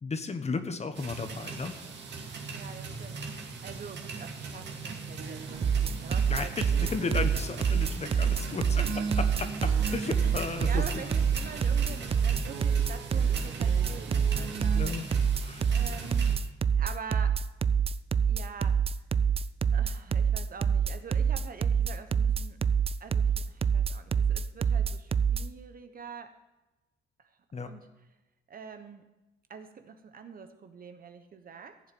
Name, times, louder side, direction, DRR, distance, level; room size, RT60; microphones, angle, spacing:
voice 1, 0.0-1.7 6.3-8.8 9.2-9.3 9.9-11.0 14.7-15.1 15.4-15.7 27.5-27.7, left 4 dB, 35° left, 8 dB, 1.2 m, -34 dB
sound 1, 0.9-16.4, right 4 dB, 60° right, 2.1 m, -40 dB
voice 2, 2.5-6.7 7.0-7.1 8.0-9.1 9.4-9.5 10.1-15.0 15.7-16.3 16.8-17.4 18.2-18.9 19.7-22.6 23.0-26.4 27.2-27.3 27.6-27.9 28.5-29.0 29.5-31.8, right 6 dB, 45° right, 8 dB, 1.2 m, -45 dB
sound 2, 5.2-14.8, right 5 dB, 85° right, 1.2 m, -41 dB
sound 3, 5.6-25.4, right 7 dB, 30° right, 0.4 m, -26 dB
15.0 x 7.2 x 5.4 m, 1.0 s
cardioid pair, 90°, 20 cm